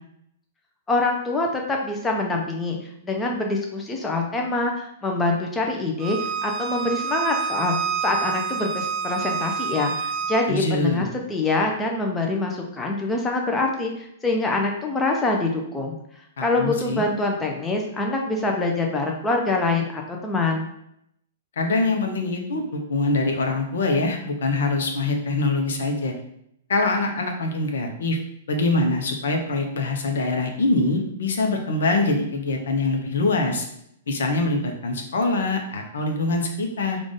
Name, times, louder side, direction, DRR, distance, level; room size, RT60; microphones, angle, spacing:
voice 1, 0.9-2.8 3.0-7.7 8.0-15.9 16.4-20.7, left 2 dB, 15° left, 1 dB, 0.7 m, -25 dB
Bowed string instrument, 6.0-10.4, right 6 dB, 30° right, 0.4 m, -28 dB
voice 2, 10.5-11.1 16.4-17.0 21.6-26.1 26.7-28.2 28.5-33.6 34.1-37.0, left 2 dB, 65° left, 3 dB, 0.8 m, -24 dB
4.8 x 2.5 x 3.7 m, 0.74 s
figure-of-eight pair, 110°, 0 cm